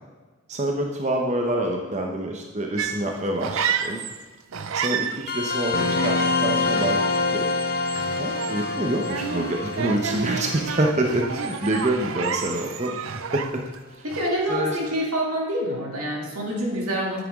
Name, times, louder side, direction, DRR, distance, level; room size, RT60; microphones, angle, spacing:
voice 1, 0.5-4.0 4.7-7.4 8.2-13.0 13.3-13.6 14.5-14.8, right 1 dB, 30° right, 1 dB, 0.8 m, -26 dB
sound 1, 2.8-4.2 4.5-13.8 14.1-14.5, right 7 dB, 70° right, 0.5 m, -31 dB
sound 2, 5.3-12.4, left 3 dB, 45° left, 0.9 m, -27 dB
voice 2, 14.0-17.2, equal, 90° right, -2 dB, 2.6 m, -27 dB
9.2 x 9.1 x 3.6 m, 1.3 s
head